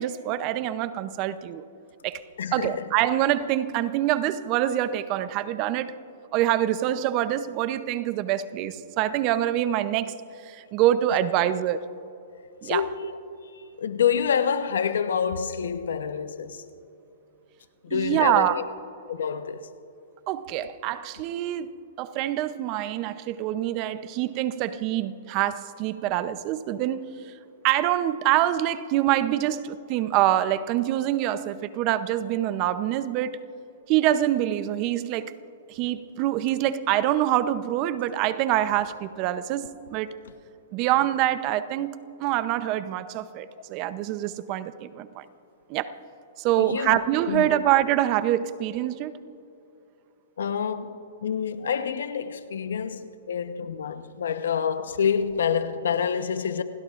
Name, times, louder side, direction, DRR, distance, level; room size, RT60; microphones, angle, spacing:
voice 1, 0.0-1.6 2.0-2.2 2.5-5.9 6.3-10.2 10.5-11.9 12.6-12.8 17.9-18.6 20.3-21.7 22.0-27.0 27.6-33.4 33.9-35.3 35.7-40.1 40.7-45.2 45.7-45.9 46.4-49.1, right 12 dB, 35° right, 0.7 m, -25 dB
voice 2, 2.4-2.9 12.6-13.1 13.5-16.6 17.8-18.6 19.1-19.6 29.3-29.4 46.6-47.0 47.3-47.6 50.4-56.6, left 7 dB, 85° left, 1.0 m, -27 dB
29.0 x 17.0 x 2.5 m
hypercardioid pair, 150°, 0 cm